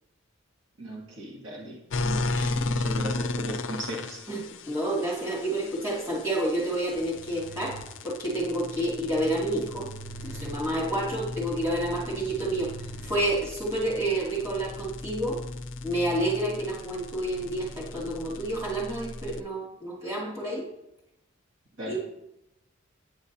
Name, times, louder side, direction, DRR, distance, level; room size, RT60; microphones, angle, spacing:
voice 1, 0.8-1.8 2.0-4.2 21.8-22.0, right 1 dB, 65° right, -3 dB, 1.7 m, -37 dB
sound 1, 1.9-19.4, left 3 dB, 60° left, 0.5 m, -36 dB
voice 2, 2.3-3.0 4.3-7.8 8.0-9.9 10.2-15.4 15.8-20.7 21.8-22.0, right 1 dB, 15° right, -6 dB, 2.4 m, -29 dB
sound 2, 6.9-13.8, right 4 dB, 50° right, 0.8 m, -46 dB
8.9 x 8.2 x 2.7 m, 0.83 s
head